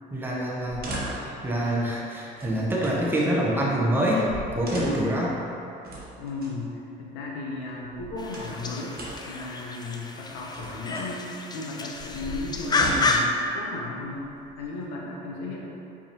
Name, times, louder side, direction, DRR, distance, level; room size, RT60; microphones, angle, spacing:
voice 1, 0.1-0.8 1.2-4.3 4.5-5.3, right 1 dB, 10° right, -5 dB, 0.8 m, -25 dB
sound 1, 0.6-1.4 2.4-3.3 4.0-4.1 4.3-5.2 5.8-6.5 7.7-8.6 8.9-9.4 10.3-11.1 11.9-13.3 14.1-14.8, right 1 dB, 45° right, 1.0 m, -38 dB
voice 2, 6.2-9.0 9.2-11.2 11.5-14.3 14.6-15.7, left 3 dB, 85° left, -3 dB, 0.8 m, -35 dB
sound 2, 8.2-13.3, left 3 dB, 20° left, 0.4 m, -30 dB
4.6 x 3.5 x 2.9 m, 2.8 s
supercardioid pair, 70°, 21 cm